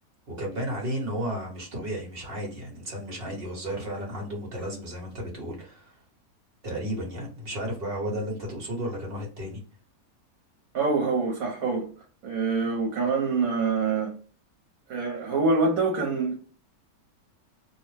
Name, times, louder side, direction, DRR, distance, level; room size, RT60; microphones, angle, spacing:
voice 1, 0.3-6.0 6.6-9.6, equal, 45° right, 1.2 m, -33 dB
voice 2, 10.7-11.9 12.2-14.1 14.9-16.4, right 4 dB, 70° right, 1.2 m, -25 dB
2.7 x 2.1 x 3.2 m
omnidirectional pair, 1.6 m